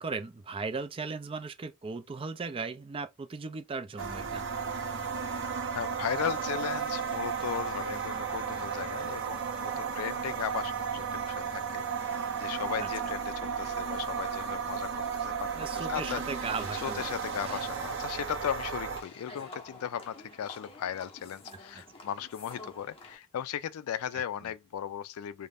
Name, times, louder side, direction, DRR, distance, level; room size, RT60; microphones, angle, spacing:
voice 1, 0.0-4.4 12.8-13.1 15.5-17.0 17.4-17.6 19.3-19.4 21.7-21.8 24.4-24.5, right 4 dB, 25° right, 0.3 m, -37 dB
sound 1, 4.0-19.0, right 6 dB, 55° right, 0.7 m, -34 dB
voice 2, 5.7-14.9 15.2-16.2 16.7-25.5, left 9 dB, 80° left, 0.3 m, -37 dB
sound 2, 15.9-23.2, left 2 dB, 25° left, 0.7 m, -50 dB
2.5 x 2.1 x 3.3 m
head